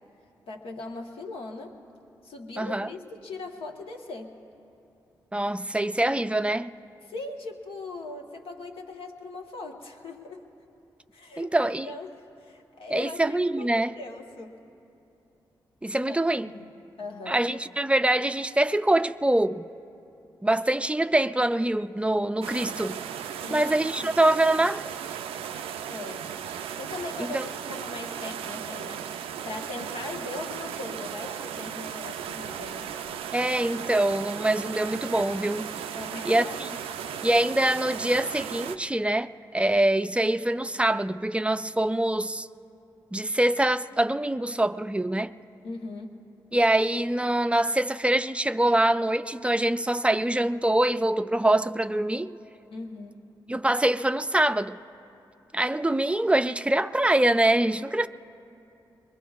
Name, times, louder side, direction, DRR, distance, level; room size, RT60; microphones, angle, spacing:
voice 1, 0.5-1.8 2.2-4.3 6.0-6.1 7.0-10.4 11.1-14.6 16.1-16.7 17.0-17.4 23.4-24.1 25.9-26.3 26.8-29.1 29.4-32.9 35.9-36.6 37.0-37.2 45.6-46.2 52.7-53.2, left 3 dB, 75° left, 1.2 m, -40 dB
voice 2, 2.6-2.9 5.3-6.7 11.4-11.9 12.9-13.9 15.8-16.5 17.3-19.6 20.4-23.0 23.5-24.8 27.2-27.5 33.3-35.7 36.3-36.4 37.2-42.5 43.1-45.3 46.5-52.3 53.5-54.8 55.5-58.1, right 1 dB, 10° right, 0.4 m, -24 dB
sound 1, 22.4-38.8, right 8 dB, 85° right, 0.4 m, -36 dB
22.0 x 21.5 x 2.4 m
supercardioid pair, 40°, 9 cm